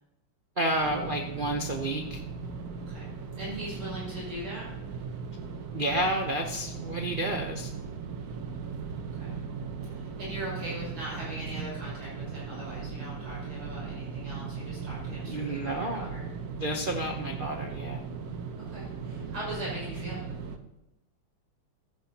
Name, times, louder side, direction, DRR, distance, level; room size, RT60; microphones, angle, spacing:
voice 1, 0.6-2.2 5.7-7.7 15.3-16.1 16.6-18.0, right 1 dB, 90° right, 2 dB, 0.4 m, -30 dB
sound 1, 0.7-20.6, right 5 dB, 55° right, 1.2 m, -38 dB
voice 2, 3.4-4.7 9.1-9.3 9.8-16.3 17.0-17.1 18.6-20.3, right 1 dB, 70° right, -7 dB, 6.7 m, -40 dB
15.5 x 14.0 x 2.9 m, 0.91 s
omnidirectional pair, 2.4 m